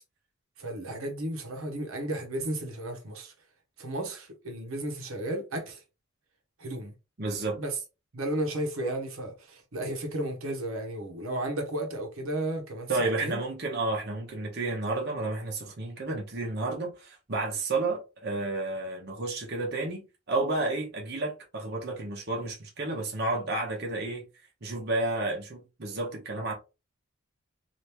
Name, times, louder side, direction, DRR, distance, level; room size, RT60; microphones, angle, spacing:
voice 1, 0.6-3.3 3.8-5.8 6.6-6.9 7.6-7.8 8.1-13.4, right 1 dB, 75° right, 0.9 m, -33 dB
voice 2, 7.2-7.6 12.9-24.2 24.6-26.5, right 2 dB, 50° right, 0.8 m, -31 dB
3.4 x 2.6 x 2.9 m
head